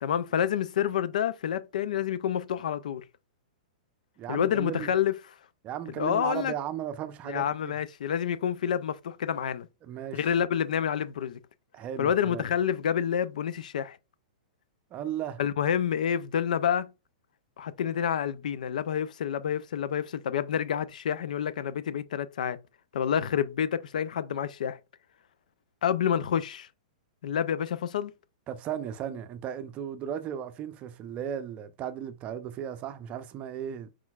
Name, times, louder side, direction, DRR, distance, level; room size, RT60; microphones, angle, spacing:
voice 1, 0.0-3.0 4.3-5.2 6.0-6.5 7.3-9.7 10.1-11.4 12.0-14.0 15.4-16.9 17.6-22.6 22.9-24.8 25.8-26.7 27.2-28.1, left 9 dB, 75° left, 0.4 m, -28 dB
voice 2, 4.2-4.9 5.6-7.7 9.8-10.3 11.7-12.4 14.9-15.4 28.5-33.9, right 9 dB, 30° right, 0.6 m, -36 dB
4.4 x 4.3 x 2.4 m
hypercardioid pair, 125°, 4 cm